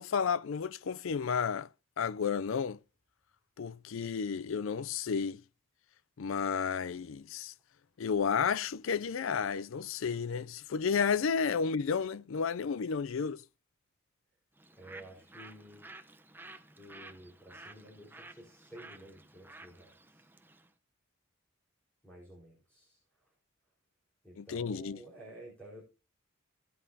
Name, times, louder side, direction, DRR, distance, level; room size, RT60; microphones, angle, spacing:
voice 1, 0.0-1.7 2.0-2.8 3.6-5.4 6.2-7.5 8.0-13.4 24.4-25.0, left 6 dB, 70° left, 0.4 m, -32 dB
Bird, 14.5-20.7, right 2 dB, 10° right, 0.8 m, -53 dB
voice 2, 14.7-15.9 16.8-20.3 22.0-23.0 24.2-25.8, right 1 dB, 10° left, 4.5 m, -52 dB
16.5 x 8.3 x 2.8 m
head